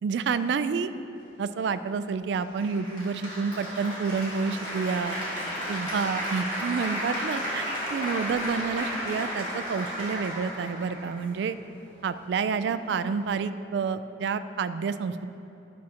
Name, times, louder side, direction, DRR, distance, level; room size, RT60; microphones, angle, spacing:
voice 1, 0.0-0.9 1.4-5.2 5.7-11.6 12.0-15.3, right 5 dB, 75° right, 13 dB, 0.3 m, -29 dB
Applause, 2.6-11.6, equal, 25° left, 1.8 m, -33 dB
sound 1, 7.6-13.2, right 1 dB, 10° left, 1.8 m, -47 dB
11.5 x 6.2 x 2.9 m, 2.9 s
head